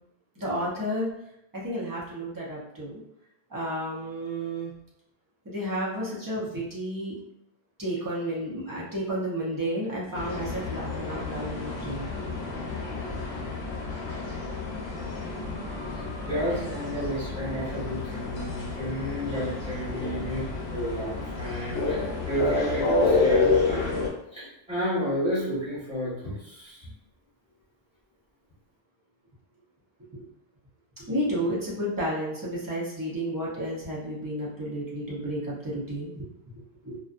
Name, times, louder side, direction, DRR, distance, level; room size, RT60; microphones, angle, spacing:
voice 1, 0.4-1.1 1.5-3.0 3.5-4.7 5.4-7.1 7.8-12.1 12.4-12.5 12.8-13.3 30.1-30.3 31.0-36.3 36.8-37.0, equal, 25° right, -6 dB, 0.6 m, -32 dB
sound 1, 10.1-24.1, left 3 dB, 75° left, 0.9 m, -29 dB
voice 2, 15.9-24.0 24.3-26.9, equal, 5° right, -10 dB, 1.2 m, -32 dB
2.6 x 2.3 x 2.4 m, 0.79 s
omnidirectional pair, 1.0 m